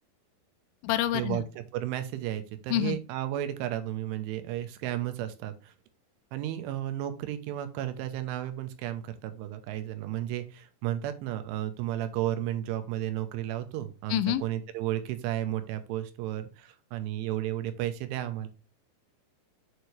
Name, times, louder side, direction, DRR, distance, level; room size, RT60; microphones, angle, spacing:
voice 1, 0.8-1.4 2.7-3.0 14.1-14.4, left 12 dB, 90° left, 12 dB, 3.1 m, -27 dB
voice 2, 1.7-5.5 6.3-10.4 10.8-16.4 16.9-18.5, right 12 dB, 85° right, 9 dB, 3.3 m, -33 dB
8.0 x 4.6 x 3.2 m, 0.32 s
omnidirectional pair, 5.5 m